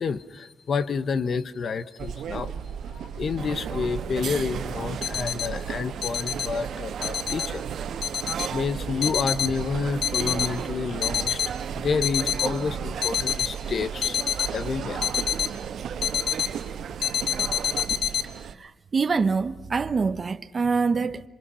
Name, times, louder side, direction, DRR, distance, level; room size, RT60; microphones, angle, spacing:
voice 1, 0.0-2.5 2.9-7.6 8.5-14.2 14.5-15.1, left 5 dB, 45° left, 1.2 m, -29 dB
sound 1, 2.0-18.5, right 8 dB, 90° right, 1.6 m, -36 dB
sound 2, 3.4-17.8, right 8 dB, 70° right, 1.6 m, -37 dB
sound 3, 5.0-5.5 6.0-6.5 7.0-7.5 8.0-8.5 9.0-9.5 10.0-10.5 11.0-11.5 12.0-12.5 13.0-13.5 14.0-14.5 15.0-15.5 16.0-16.5 17.0-18.2, left 9 dB, 75° left, 1.8 m, -26 dB
voice 2, 18.6-21.2, right 4 dB, 30° right, 1.0 m, -25 dB
27.5 x 27.0 x 5.7 m
wide cardioid pair, 160°, 0 cm